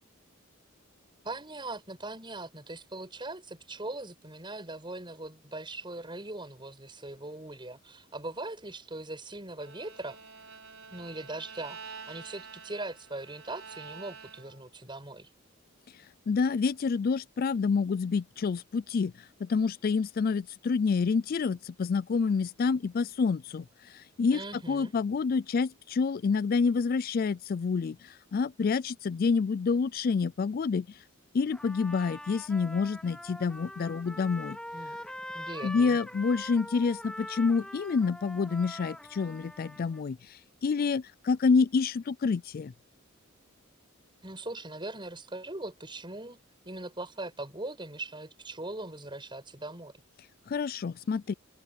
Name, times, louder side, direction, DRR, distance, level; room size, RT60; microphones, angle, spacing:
voice 1, 1.2-10.2 10.9-15.3 24.3-24.9 34.7-35.0 35.3-36.0 44.2-49.9, right 2 dB, 25° right, 7.5 m, -40 dB
Bowed string instrument, 9.6-14.8, right 5 dB, 75° right, 5.4 m, -48 dB
voice 2, 15.9-31.0 31.3-34.6 35.6-42.7 50.5-51.3, left 5 dB, 45° left, 0.3 m, -28 dB
Trumpet, 31.5-40.0, left 1 dB, 5° left, 2.6 m, -43 dB
open air
head